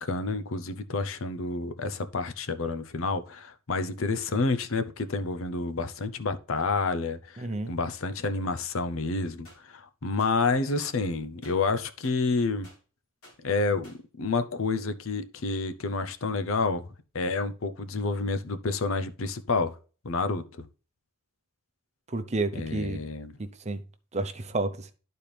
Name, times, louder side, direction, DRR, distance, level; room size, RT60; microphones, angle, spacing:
voice 1, 0.0-9.5 9.7-12.7 13.4-16.9 17.1-19.8 20.0-20.4 22.5-23.3, left 3 dB, 65° left, 0.7 m, -29 dB
voice 2, 7.4-7.7 22.1-23.0 23.4-23.8 24.1-24.9, right 2 dB, 30° right, 0.7 m, -30 dB
sound 1, 9.4-9.6 10.2-10.3 10.8-11.0 11.4-11.6 12.0-12.2 12.6-12.8 13.2-13.4 13.8-14.0, left 1 dB, 90° left, 2.6 m, -52 dB
12.0 x 4.3 x 3.3 m
head